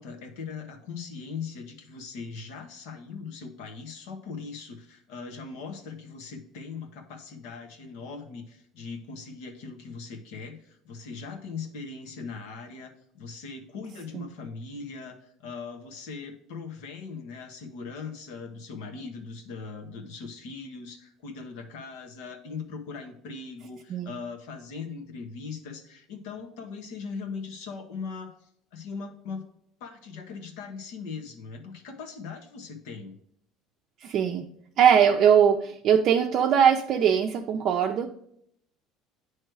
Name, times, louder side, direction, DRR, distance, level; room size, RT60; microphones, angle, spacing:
voice 1, 0.0-29.4 29.8-33.1, left 5 dB, 80° left, 5 dB, 1.2 m, -40 dB
voice 2, 34.0-34.4 34.8-38.1, right 8 dB, 45° right, 2 dB, 0.5 m, -21 dB
9.2 x 3.2 x 4.7 m, 0.68 s
cardioid pair, 150°, 0 cm